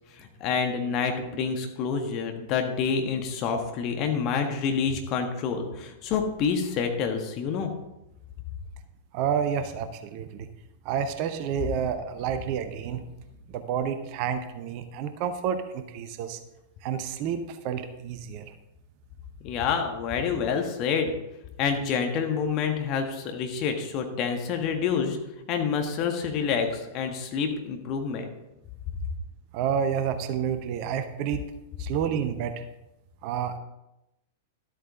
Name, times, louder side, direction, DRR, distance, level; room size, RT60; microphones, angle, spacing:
voice 1, 0.2-7.7 19.4-21.1 21.6-25.2 25.5-28.2, left 6 dB, 40° left, 4 dB, 1.6 m, -27 dB
voice 2, 9.1-10.5 10.8-13.0 13.5-16.4 16.8-18.5 29.5-31.5 31.8-32.6 33.2-33.6, right 8 dB, 45° right, 9 dB, 0.9 m, -29 dB
12.5 x 8.3 x 3.7 m, 0.92 s
figure-of-eight pair, 95°, 0 cm